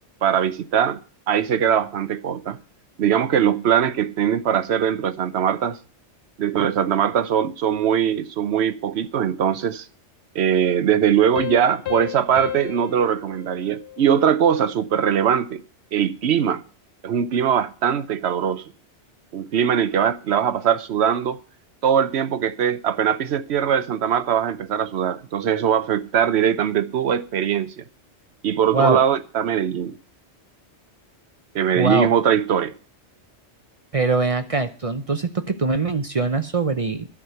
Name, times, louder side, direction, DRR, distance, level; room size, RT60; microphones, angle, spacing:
voice 1, 0.2-1.0 1.3-2.6 3.0-5.8 6.4-9.9 10.3-15.6 15.9-16.6 17.0-18.6 19.3-21.4 21.8-27.8 28.4-30.0 31.5-32.7, right 8 dB, 65° right, 1.0 m, -21 dB
Piano, 11.4-14.6, left 14 dB, 60° left, 0.9 m, -33 dB
voice 2, 31.8-32.1 33.9-37.1, right 3 dB, 35° right, 0.7 m, -22 dB
11.5 x 6.1 x 7.8 m
omnidirectional pair, 1.2 m